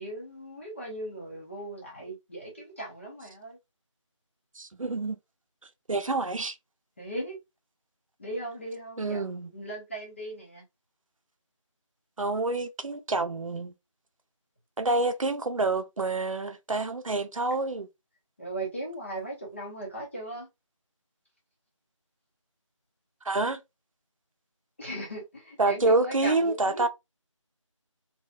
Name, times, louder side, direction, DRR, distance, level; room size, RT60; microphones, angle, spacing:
voice 1, 0.0-3.6 7.0-7.4 8.2-10.6 18.4-20.5 24.8-26.9, right 1 dB, 25° left, 0.8 m, -37 dB
voice 2, 4.6-5.2 5.9-6.6 9.0-9.5 12.2-13.7 14.8-17.9 23.2-23.6 25.6-26.9, right 3 dB, 85° right, 0.6 m, -27 dB
3.1 x 2.3 x 2.2 m
figure-of-eight pair, 170°, 17 cm